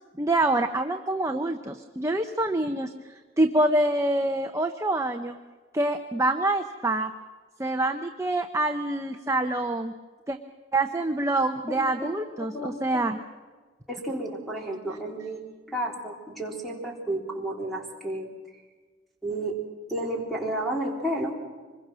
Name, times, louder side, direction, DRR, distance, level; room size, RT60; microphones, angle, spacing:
voice 1, 0.2-2.9 3.4-5.4 5.7-7.1 7.6-9.9 10.3-10.4 10.7-13.2, right 2 dB, 15° right, 5 dB, 0.8 m, -26 dB
voice 2, 11.7-12.1 12.5-12.7 13.9-18.3 19.2-19.6 19.9-21.4, right 1 dB, ahead, -2 dB, 4.0 m, -31 dB
25.5 x 22.0 x 6.2 m, 1.4 s
head